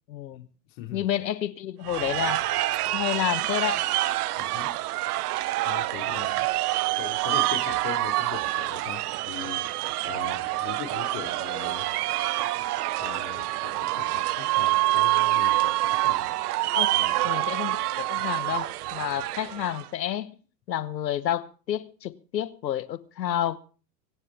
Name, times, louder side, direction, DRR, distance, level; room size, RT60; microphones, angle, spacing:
voice 1, 0.1-0.5 0.9-2.4 2.9-3.8 6.0-6.2 16.7-17.0 17.2-20.4 20.7-23.6, left 11 dB, 90° left, 1.2 m, -30 dB
voice 2, 0.7-1.1 4.4-4.7 5.6-6.4 7.0-11.9 13.0-16.3 16.9-17.3 19.1-19.2, left 10 dB, 50° left, 3.7 m, -40 dB
sound 1, 1.8-19.9, right 17 dB, 65° right, 1.0 m, -27 dB
24.0 x 10.0 x 4.2 m
hypercardioid pair, 110°, 50 cm